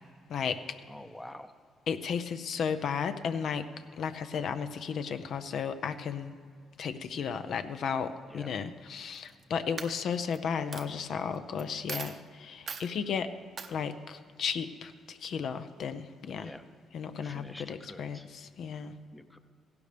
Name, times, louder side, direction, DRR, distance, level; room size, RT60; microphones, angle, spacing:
voice 1, 0.3-0.6 1.9-3.7 4.0-6.3 6.8-13.3 13.7-16.6 16.9-18.9, left 6 dB, 65° left, 10 dB, 0.5 m, -34 dB
voice 2, 0.9-1.5 8.3-8.5 16.4-16.6 17.2-18.2 19.1-19.4, left 1 dB, 10° left, 9 dB, 0.6 m, -47 dB
Coin (dropping), 9.1-9.4 9.8-10.4 10.7-10.8 11.6-11.7 11.9-12.2 12.7-12.9 13.6-13.7, right 5 dB, 45° right, 0.7 m, -39 dB
15.0 x 11.5 x 3.4 m, 2.1 s
cardioid pair, 90°, 0 cm